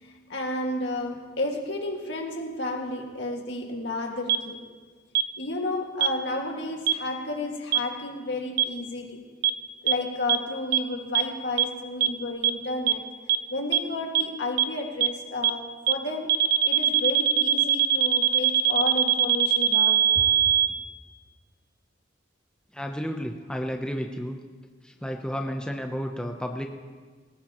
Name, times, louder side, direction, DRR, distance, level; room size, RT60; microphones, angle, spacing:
voice 1, 0.0-4.7 5.4-9.2 9.8-13.0 13.5-20.3, left 2 dB, 65° left, 1 dB, 2.0 m, -32 dB
sound 1, 4.3-4.4 5.1-5.2 6.0-6.1 6.9-7.0 7.7-7.8 8.6-8.7 9.4-9.5 9.9-10.0 10.3-10.4 10.7-10.8 11.1-11.2 11.6-11.7 12.0-12.1 12.4-12.5 12.9-13.0 13.3-13.4 13.7-13.8 14.1-14.2 14.6-14.7 15.0-15.1 15.4-15.5 15.9-16.0 16.3-20.7, right 11 dB, 55° right, 0.6 m, -20 dB
voice 2, 22.7-24.4 24.8-26.7, equal, 5° left, 3 dB, 0.7 m, -32 dB
19.5 x 18.0 x 3.0 m, 1.5 s
head